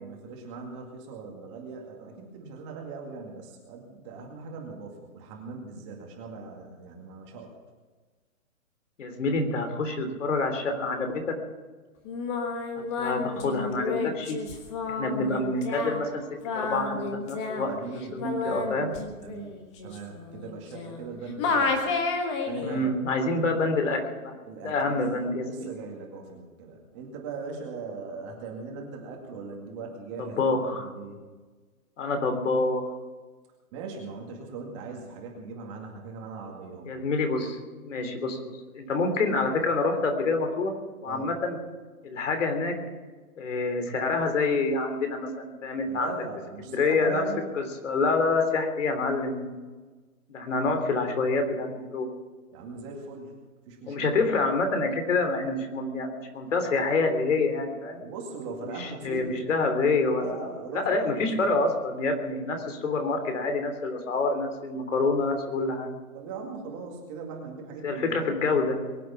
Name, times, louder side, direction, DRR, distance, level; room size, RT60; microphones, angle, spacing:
voice 1, 0.0-7.5 17.7-18.9 19.2-19.5 19.8-21.9 22.5-23.0 24.5-31.2 33.7-36.9 41.1-41.3 45.9-47.5 52.5-53.3 53.7-54.1 58.0-59.2 60.1-61.5 66.1-68.3, right 4 dB, 20° right, 0 dB, 2.2 m, -40 dB
voice 2, 9.0-11.4 13.0-14.4 14.9-16.2 16.5-18.9 22.6-24.3 24.6-25.7 30.4-30.9 32.0-32.9 36.9-37.6 37.8-40.7 41.0-41.6 42.0-42.8 43.4-46.1 46.6-47.2 47.6-49.6 50.3-52.1 53.9-58.0 58.6-65.9 67.8-68.8, left 3 dB, 60° left, 6 dB, 3.4 m, -27 dB
Singing, 12.1-21.1 21.4-22.8, left 4 dB, 20° left, 1.5 m, -31 dB
22.5 x 8.4 x 7.1 m, 1.3 s
hypercardioid pair, 170°, 43 cm